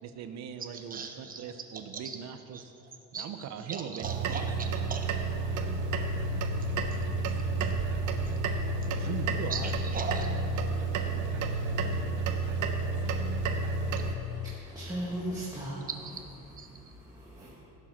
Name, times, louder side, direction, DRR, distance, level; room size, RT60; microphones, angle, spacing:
voice 1, 0.0-2.7 3.1-4.4 8.9-9.8, right 8 dB, 65° right, 9 dB, 0.9 m, -40 dB
voice 2, 0.9-1.4 1.9-2.2 3.1-3.3 3.7-5.1 9.5-10.3 16.0-16.2 16.6-16.7, right 5 dB, 30° right, 3 dB, 1.2 m, -38 dB
sound 1, 4.0-14.2, right 3 dB, 85° right, 1.2 m, -30 dB
voice 3, 14.0-15.9 16.4-17.6, right 1 dB, 10° right, -6 dB, 1.7 m, -39 dB
16.0 x 7.6 x 6.1 m, 3.0 s
cardioid pair, 155°, 30 cm